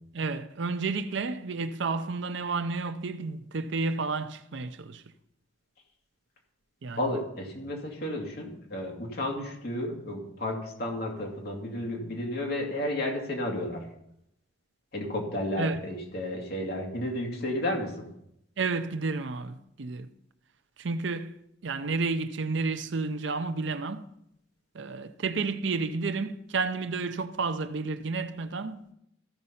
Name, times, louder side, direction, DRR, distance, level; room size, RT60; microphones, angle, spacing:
voice 1, 0.1-5.0 6.8-7.0 15.6-15.8 18.6-20.1 20.8-21.3 21.6-24.1 24.7-28.8, right 4 dB, 60° right, 0.5 m, -31 dB
voice 2, 7.0-13.9 14.9-18.1, left 1 dB, 50° left, 2.4 m, -32 dB
14.5 x 5.3 x 5.6 m
head